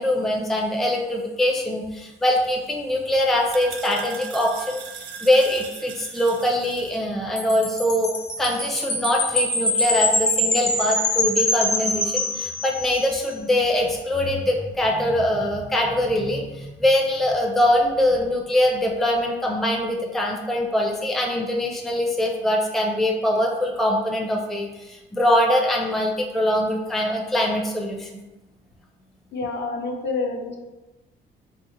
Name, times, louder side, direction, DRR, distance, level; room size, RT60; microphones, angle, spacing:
voice 1, 0.0-4.8 5.2-8.1 8.4-28.2, left 1 dB, ahead, -1 dB, 0.5 m, -23 dB
sound 1, 2.4-7.0, right 6 dB, 65° right, 0.4 m, -40 dB
Wind chime, 7.4-13.0, left 2 dB, 30° left, 1.0 m, -24 dB
voice 2, 29.3-30.6, left 3 dB, 60° left, 1 dB, 0.7 m, -28 dB
3.7 x 2.1 x 3.1 m, 1.1 s
cardioid pair, 90°, 20 cm